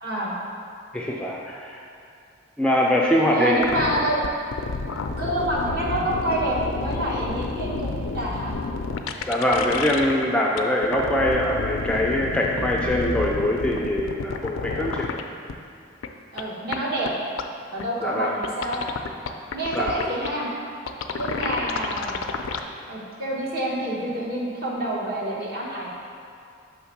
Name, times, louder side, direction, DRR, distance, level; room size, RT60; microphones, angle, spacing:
voice 1, 0.0-0.3 3.2-4.2 5.1-8.5 16.3-17.1 17.7-18.8 19.5-20.5 21.1-22.2 22.9-25.9, right 1 dB, 50° right, -5 dB, 1.2 m, -27 dB
voice 2, 0.9-1.8 2.6-3.9 5.7-5.8 9.3-15.1 18.0-18.3 19.7-19.9, left 1 dB, 5° left, -2 dB, 0.3 m, -23 dB
sound 1, 3.6-10.3 10.6-15.2 15.5-15.6 16.0-16.1 16.4-16.5 16.7-16.8 17.1-17.2 17.4-17.5 17.8-17.9 18.4-20.3 20.9-22.6, left 4 dB, 85° left, 0.4 m, -30 dB
5.6 x 3.4 x 5.8 m, 2.5 s
head